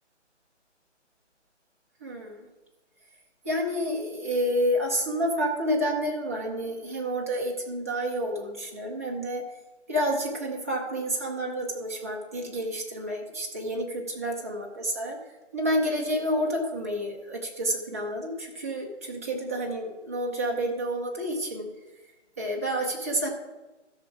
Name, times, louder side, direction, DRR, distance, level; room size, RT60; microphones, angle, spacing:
voice 1, 2.0-2.5 3.4-9.4 9.9-15.2 15.5-21.7 22.4-23.3, equal, 15° right, -2 dB, 0.7 m, -29 dB
13.0 x 6.2 x 4.7 m, 1.1 s
figure-of-eight pair, 165°, 37 cm